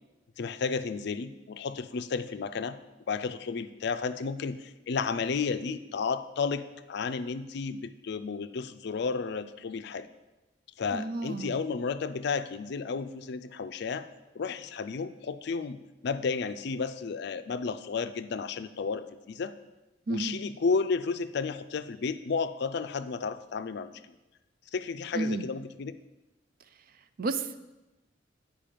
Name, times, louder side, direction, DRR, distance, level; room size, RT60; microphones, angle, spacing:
voice 1, 0.4-2.8 3.1-10.1 10.8-14.1 14.3-19.5 20.1-24.2 24.7-25.9, left 5 dB, 65° left, 12 dB, 0.4 m, -32 dB
voice 2, 10.9-11.6 20.1-20.4 25.1-25.5 27.2-27.6, right 3 dB, 50° right, 11 dB, 0.4 m, -31 dB
9.0 x 5.3 x 5.1 m, 1.1 s
head